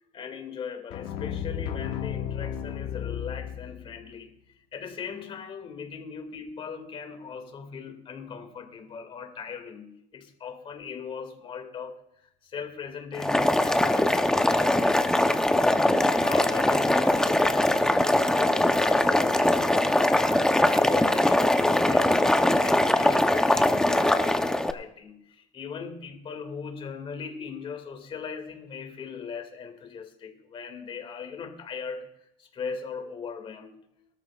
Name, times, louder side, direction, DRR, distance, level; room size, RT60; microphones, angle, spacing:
voice 1, 0.1-4.3 4.7-12.0 12.4-15.1 15.6-32.1 32.4-33.8, left 6 dB, 35° left, 5 dB, 2.3 m, -39 dB
sound 1, 0.9-4.0, left 9 dB, 65° left, 1.8 m, -33 dB
Boiling, 13.1-24.7, left 1 dB, 5° left, 0.8 m, -22 dB
22.5 x 13.0 x 2.4 m, 0.77 s
supercardioid pair, 120°, 16 cm